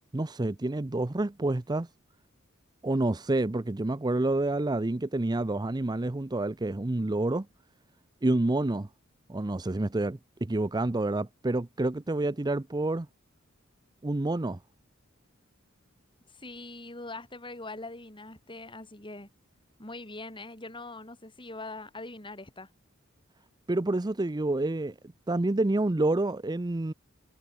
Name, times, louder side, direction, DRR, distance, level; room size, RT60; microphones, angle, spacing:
voice 1, 0.1-1.9 2.8-7.5 8.2-8.9 9.3-13.1 14.0-14.6 23.7-24.9 25.3-26.9, right 2 dB, 20° right, 0.6 m, -28 dB
voice 2, 16.3-19.3 19.8-22.7, left 2 dB, 25° left, 7.9 m, -42 dB
head